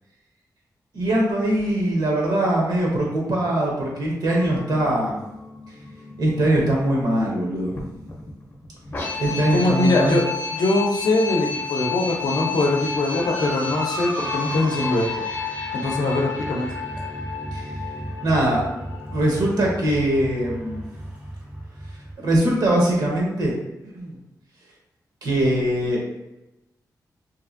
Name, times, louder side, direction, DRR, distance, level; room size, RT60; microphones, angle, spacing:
voice 1, 0.9-5.1 6.2-7.7 9.2-10.2 17.5-17.7 18.2-18.6 19.1-20.8 22.2-23.6 23.9-24.2 25.2-26.0, right 1 dB, 85° right, -2 dB, 0.8 m, -22 dB
sound 1, 4.3-22.1, left 4 dB, 35° left, 0.5 m, -32 dB
voice 2, 9.5-10.2 10.5-15.1 15.7-16.7, left 2 dB, 85° left, 1 dB, 0.5 m, -22 dB
Motor vehicle (road) / Siren, 12.9-21.4, right 1 dB, 20° right, 0.4 m, -38 dB
2.8 x 2.5 x 2.5 m, 0.95 s
wide cardioid pair, 140°, 7 cm